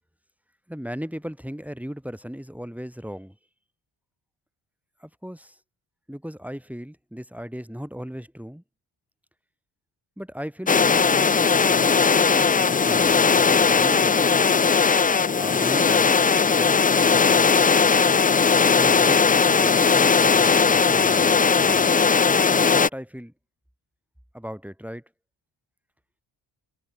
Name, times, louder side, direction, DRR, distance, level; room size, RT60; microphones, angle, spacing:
voice 1, 0.7-3.4 5.0-5.6 6.1-8.6 10.2-14.5 15.4-17.5 18.6-21.9 22.4-23.3 24.3-25.0, equal, 5° right, 6.9 m, -37 dB
sound 1, 10.7-22.9, left 5 dB, 20° left, 0.4 m, -18 dB
supercardioid pair, 55°, 48 cm